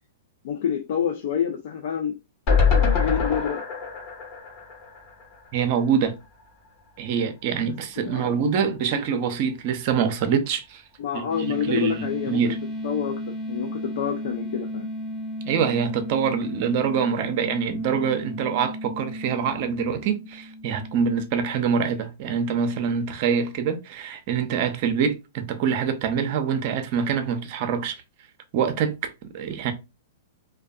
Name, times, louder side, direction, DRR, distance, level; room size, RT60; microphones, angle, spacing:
voice 1, 0.4-2.1 2.8-3.6 8.0-8.5 11.0-12.4 12.8-14.9, left 8 dB, 60° left, 0.4 m, -28 dB
sound 1, 2.5-5.7 6.1-6.2 6.4-6.5, left 5 dB, 40° left, 1.1 m, -24 dB
voice 2, 5.5-6.1 7.0-10.8 11.1-11.3 11.6-12.6 15.5-28.0 28.5-29.7, right 7 dB, 50° right, 0.5 m, -25 dB
sound 2, 11.3-21.0, equal, 10° left, 0.6 m, -34 dB
2.5 x 2.2 x 2.3 m
hypercardioid pair, 120°, 0 cm